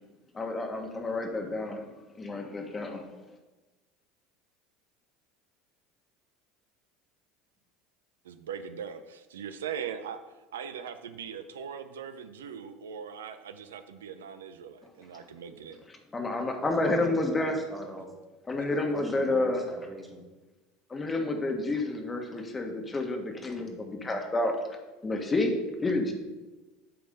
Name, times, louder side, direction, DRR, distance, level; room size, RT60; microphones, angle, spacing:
voice 1, 0.3-1.9 2.2-3.0 16.1-17.6 18.5-19.6 20.9-24.5 25.0-25.5 25.8-26.1, left 2 dB, 25° left, 3 dB, 1.4 m, -29 dB
voice 2, 8.2-10.2 10.5-15.8 18.6-18.9, right 7 dB, 85° right, 10 dB, 0.4 m, -40 dB
voice 3, 16.7-18.1 18.7-20.2, right 1 dB, 10° right, 1 dB, 1.6 m, -42 dB
8.7 x 3.5 x 5.2 m, 1.1 s
hypercardioid pair, 85°, 0 cm